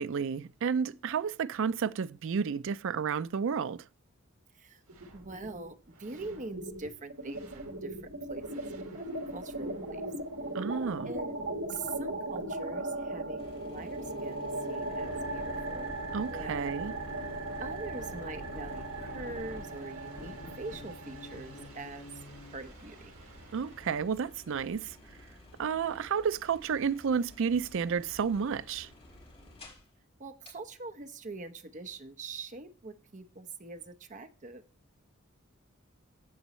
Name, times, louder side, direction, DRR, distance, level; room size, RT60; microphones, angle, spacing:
voice 1, 0.0-3.8 10.5-11.1 16.1-16.9 23.5-25.0 25.6-28.9, right 6 dB, 60° right, 0.4 m, -31 dB
sound 1, 4.9-5.7 6.0-24.0, right 2 dB, 85° right, 1.7 m, -39 dB
voice 2, 5.1-8.7 8.9-10.0 11.1-11.4 11.7-15.9 16.2-16.7 17.6-22.1 22.5-23.1 30.2-34.6, right 3 dB, 35° right, 0.8 m, -44 dB
sound 2, 13.4-29.9 30.4-30.5, left 1 dB, 30° left, 4.7 m, -54 dB
sound 3, 14.0-22.6, left 2 dB, 70° left, 1.4 m, -47 dB
16.0 x 5.4 x 3.1 m
head